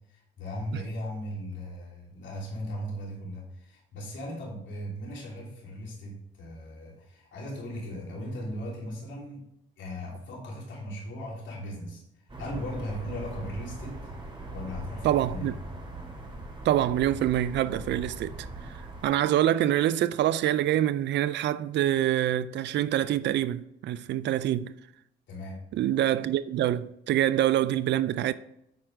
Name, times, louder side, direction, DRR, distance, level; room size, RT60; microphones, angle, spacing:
voice 1, 0.1-9.5 9.8-12.0 12.4-14.1 14.5-15.5 25.3-25.6, equal, 70° left, 3.1 m, -37 dB
sound 1, 12.3-19.1, right 2 dB, 25° right, 2.5 m, -40 dB
voice 2, 15.0-15.6 16.6-24.7 25.7-28.3, right 12 dB, 65° right, 0.4 m, -26 dB
9.4 x 4.4 x 5.0 m
cardioid pair, 90°, 20 cm